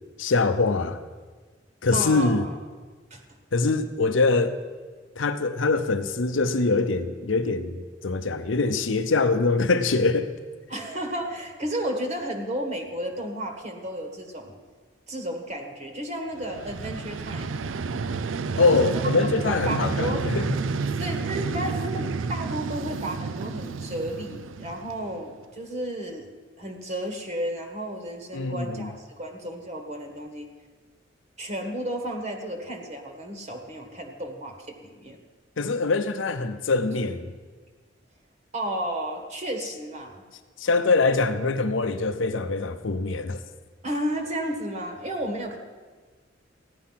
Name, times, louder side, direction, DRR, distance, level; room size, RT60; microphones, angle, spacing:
voice 1, 0.2-1.0 1.8-2.4 3.5-4.5 5.2-10.3 18.6-20.5 28.3-28.9 35.6-37.3 40.6-43.4, left 3 dB, 80° left, 0.7 m, -23 dB
voice 2, 1.9-2.6 3.1-3.2 10.7-14.6 15.1-17.6 18.7-20.2 21.0-26.3 26.6-30.5 31.4-35.2 38.5-40.2 43.8-45.6, right 1 dB, 40° right, 1.5 m, -33 dB
Vehicle, 16.4-25.3, right 4 dB, 85° right, 0.5 m, -30 dB
15.0 x 10.5 x 5.8 m
head